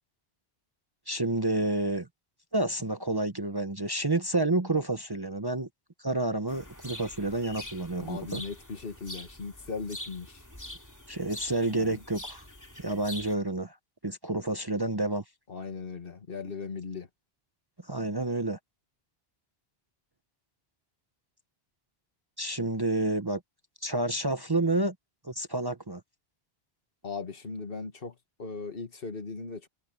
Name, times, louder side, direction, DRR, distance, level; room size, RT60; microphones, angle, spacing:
voice 1, 1.1-2.1 2.5-5.7 6.0-8.4 11.1-12.5 12.8-13.8 14.0-15.2 17.8-18.6 22.4-23.4 23.8-24.9 25.2-26.0, right 2 dB, 25° right, 0.8 m, -29 dB
sound 1, 6.5-13.3, left 1 dB, 15° left, 2.6 m, -44 dB
voice 2, 8.0-10.4 11.7-12.0 15.5-17.1 27.0-29.7, left 4 dB, 65° left, 1.8 m, -38 dB
omnidirectional pair, 1.0 m